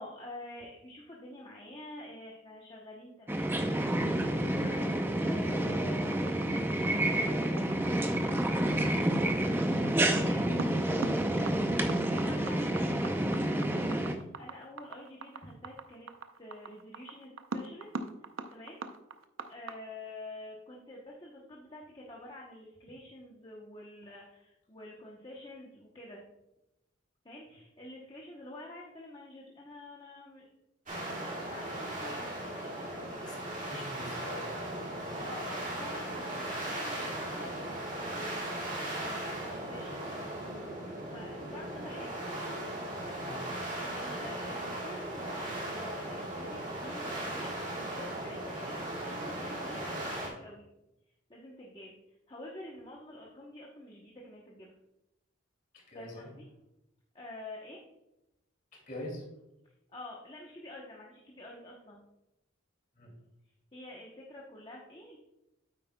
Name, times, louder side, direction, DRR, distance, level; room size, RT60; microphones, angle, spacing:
voice 1, 0.0-6.5 7.0-7.9 8.2-16.1 16.4-17.9 18.5-18.8 19.5-26.2 27.2-30.4 31.2-33.3 35.2-40.2 41.1-42.2 43.0-50.6 51.3-51.9 52.3-54.7 55.9-56.5 57.1-57.8 59.9-62.1 63.7-65.2, left 1 dB, 25° left, -3 dB, 0.9 m, -48 dB
sound 1, 3.3-14.1, right 1 dB, 10° right, 0.5 m, -29 dB
sound 2, 6.1-19.7, right 3 dB, 80° right, 0.6 m, -41 dB
sound 3, 30.9-50.3, right 1 dB, 40° right, 2.2 m, -37 dB
voice 2, 33.6-34.8 43.1-43.3 55.7-56.3 58.7-59.2 62.9-63.1, left 1 dB, 40° left, 0 dB, 2.4 m, -44 dB
9.3 x 8.2 x 2.2 m, 0.90 s
head